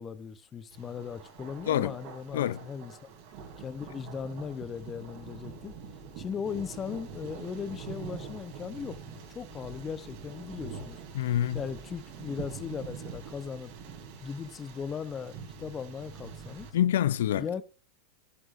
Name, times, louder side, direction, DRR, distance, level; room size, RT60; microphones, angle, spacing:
voice 1, 0.0-3.0 3.6-5.7 6.2-11.0 11.5-13.7 14.2-16.7 17.4-17.6, left 7 dB, 25° left, 0.8 m, -38 dB
Thunder, 0.7-16.7, right 5 dB, 60° right, 3.2 m, -45 dB
voice 2, 11.1-11.6 16.7-17.4, left 11 dB, 75° left, 0.4 m, -26 dB
11.0 x 10.0 x 2.6 m
hypercardioid pair, 100°, 0 cm